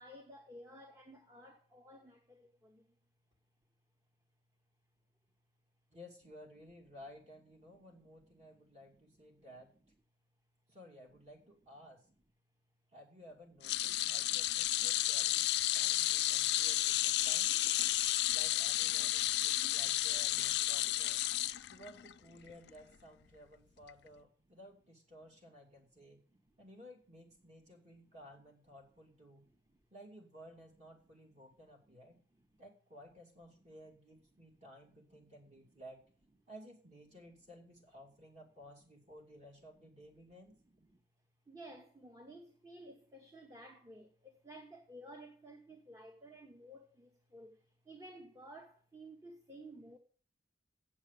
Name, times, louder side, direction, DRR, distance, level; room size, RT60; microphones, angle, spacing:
voice 1, 0.0-3.0 7.7-7.8 8.4-8.8 9.2-9.3 13.9-14.2 15.7-15.8 16.1-17.0 19.0-19.1 21.4-21.5 25.4-25.5 25.9-26.4 29.5-29.8 31.3-31.4 32.1-32.6 34.5-34.6 35.3-35.4 35.7-35.8 39.8-39.9 40.8-41.0 41.5-50.0, right 1 dB, 20° right, 0.9 m, -55 dB
voice 2, 5.9-9.7 10.7-12.0 12.9-17.5 18.3-21.2 21.7-26.2 26.6-29.4 29.9-32.2 32.6-36.0 36.5-40.5, equal, 40° right, 2.7 m, -56 dB
sound 1, 13.6-22.1 22.5-22.7 23.9-24.0, left 15 dB, 65° left, 0.4 m, -32 dB
7.8 x 7.2 x 6.8 m
head